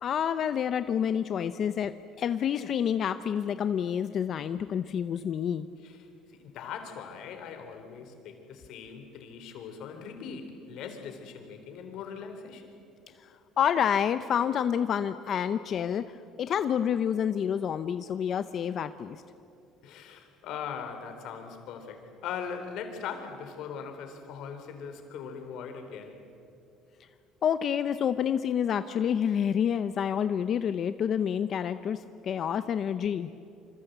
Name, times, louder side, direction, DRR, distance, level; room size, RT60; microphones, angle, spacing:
voice 1, 0.0-5.7 13.6-19.2 27.4-33.3, left 8 dB, 45° left, 11 dB, 0.7 m, -28 dB
voice 2, 5.8-12.7 19.8-26.2, left 6 dB, 65° left, 7 dB, 3.8 m, -40 dB
27.0 x 26.0 x 8.1 m, 2.6 s
cardioid pair, 140°, 0 cm